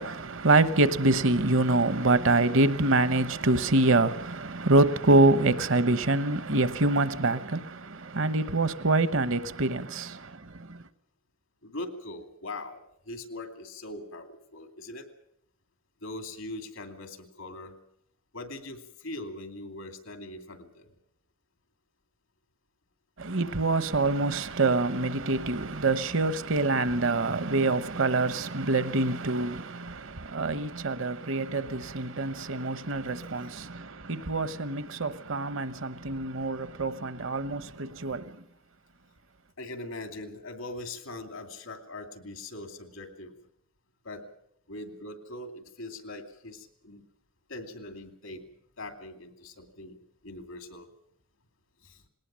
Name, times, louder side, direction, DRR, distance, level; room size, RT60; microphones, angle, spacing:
voice 1, 0.0-10.8 23.2-38.4, right 2 dB, 70° right, 1.0 m, -26 dB
voice 2, 11.6-15.1 16.0-17.8 18.3-20.9 39.6-43.4 44.0-44.2 44.7-47.0 47.5-48.5 48.8-50.0 50.2-50.9 51.8-52.0, left 2 dB, 90° left, 2.6 m, -41 dB
20.0 x 19.0 x 7.5 m
head